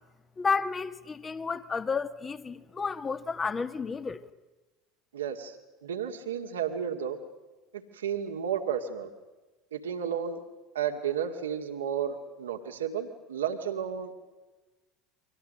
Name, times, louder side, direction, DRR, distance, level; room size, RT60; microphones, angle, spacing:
voice 1, 0.4-4.2, left 5 dB, 25° left, 1.8 m, -31 dB
voice 2, 5.1-5.6 5.8-7.2 7.7-9.1 9.7-10.4 10.7-14.1, right 8 dB, 80° right, 2.1 m, -32 dB
30.0 x 24.5 x 6.5 m
hypercardioid pair, 75°, 0 cm